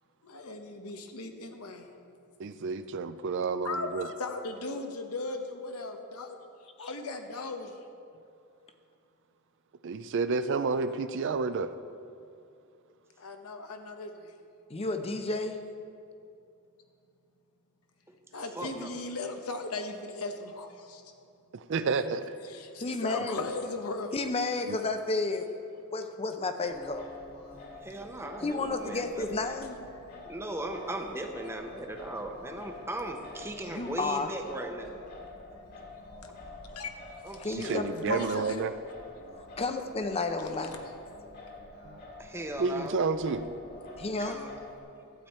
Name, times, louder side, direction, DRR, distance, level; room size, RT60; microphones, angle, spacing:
voice 1, 0.2-1.9 3.6-6.4 6.8-7.8 13.2-14.3 18.3-21.0 22.4-24.1 30.0-30.4 33.6-33.7 35.2-37.2 37.6-37.7 38.1-38.7 40.4-40.5, left 3 dB, 90° left, 5 dB, 1.0 m, -38 dB
voice 2, 2.4-4.1 9.8-11.7 21.5-22.3 24.7-24.8 37.6-38.7 41.8-42.0 42.6-43.4, right 4 dB, 55° right, 11 dB, 0.4 m, -30 dB
voice 3, 14.7-15.6 22.8-23.4 24.1-25.5 25.9-27.0 28.4-29.8 33.7-34.3 37.4-38.2 39.6-40.7 44.0-44.4, left 3 dB, 30° left, 7 dB, 0.6 m, -31 dB
voice 4, 18.5-18.9 27.8-29.4 30.2-34.9 37.2-37.8 42.2-43.0 44.2-44.5, right 1 dB, 10° right, 4 dB, 0.8 m, -38 dB
Singing, 26.7-44.8, left 2 dB, 45° left, 1.8 m, -48 dB
12.5 x 8.7 x 4.3 m, 2.5 s
head